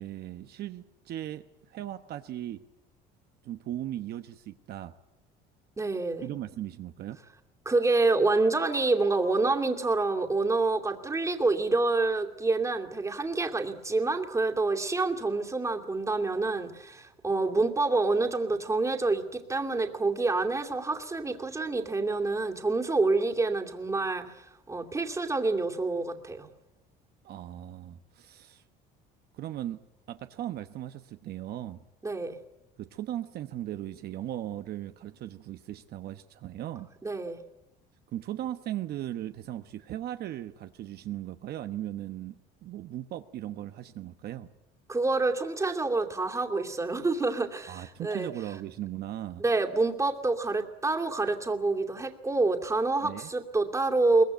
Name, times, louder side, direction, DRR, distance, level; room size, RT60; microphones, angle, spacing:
voice 1, 0.0-2.6 3.4-4.9 6.2-7.2 27.2-28.6 29.3-29.8 30.1-31.8 32.8-36.9 38.1-44.5 47.7-49.4 53.0-53.3, right 12 dB, 55° right, 9 dB, 1.1 m, -38 dB
voice 2, 5.8-6.2 7.6-26.5 32.0-32.4 37.0-37.4 44.9-48.3 49.4-54.2, right 3 dB, 15° right, 5 dB, 2.6 m, -27 dB
23.0 x 20.5 x 9.2 m, 0.90 s
cardioid pair, 115°, 19 cm